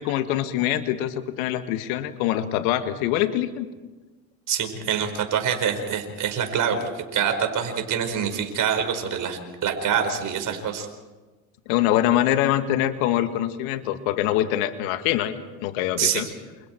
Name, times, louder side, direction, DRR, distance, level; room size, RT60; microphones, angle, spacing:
voice 1, 0.0-3.7 11.7-16.3, left 12 dB, 70° left, 9 dB, 1.9 m, -24 dB
voice 2, 4.5-10.9 16.0-16.2, right 7 dB, 45° right, 6 dB, 5.0 m, -25 dB
28.5 x 28.0 x 4.6 m, 1.2 s
hypercardioid pair, 80°, 42 cm